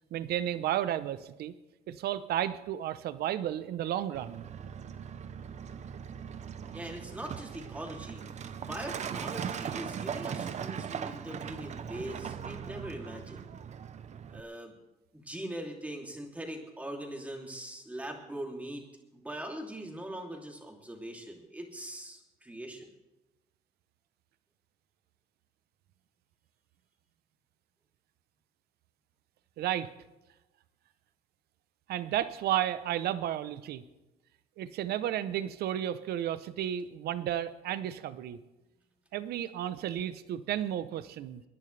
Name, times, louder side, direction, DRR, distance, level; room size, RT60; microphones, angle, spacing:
voice 1, 0.1-1.5 1.9-4.5 29.6-29.9 31.9-33.8 34.6-38.4 39.1-41.4, right 11 dB, 70° right, 13 dB, 0.8 m, -32 dB
Truck, 4.1-14.4, right 7 dB, 45° right, 0.8 m, -39 dB
voice 2, 6.7-13.5 14.3-14.7 15.1-18.8 19.1-22.9, right 1 dB, 10° right, 1 dB, 3.0 m, -41 dB
29.0 x 11.0 x 3.4 m, 1.0 s
cardioid pair, 110°, 17 cm